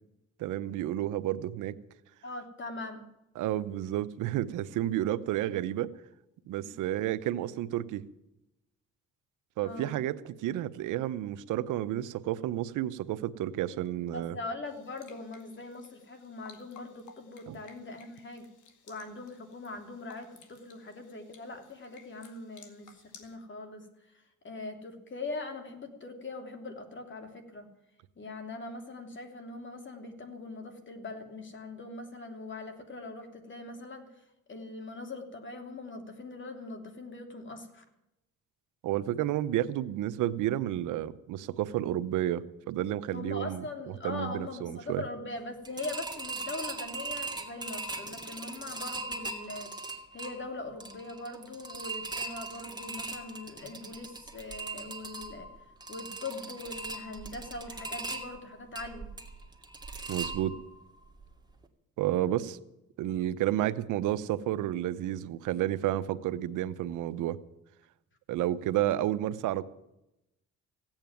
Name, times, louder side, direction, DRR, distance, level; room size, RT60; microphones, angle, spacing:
voice 1, 0.4-1.8 3.4-5.9 6.5-8.0 9.6-14.4 17.5-17.6 38.8-43.7 44.0-45.0 60.1-60.6 62.0-62.6 63.0-67.4 68.3-69.6, right 13 dB, 90° right, 15 dB, 0.8 m, -31 dB
voice 2, 2.2-3.0 6.6-6.7 9.6-10.0 14.1-18.5 18.9-27.7 28.2-34.1 34.5-37.8 43.1-49.7 50.1-55.5 55.9-59.1, left 2 dB, 40° left, 5 dB, 3.1 m, -41 dB
sound 1, 14.6-23.3, left 6 dB, 75° left, 2.2 m, -57 dB
sound 2, 45.6-60.8 61.2-61.3 61.6-61.7, right 2 dB, 15° right, 2.3 m, -40 dB
16.5 x 9.0 x 9.0 m, 0.89 s
cardioid pair, 90°, 30 cm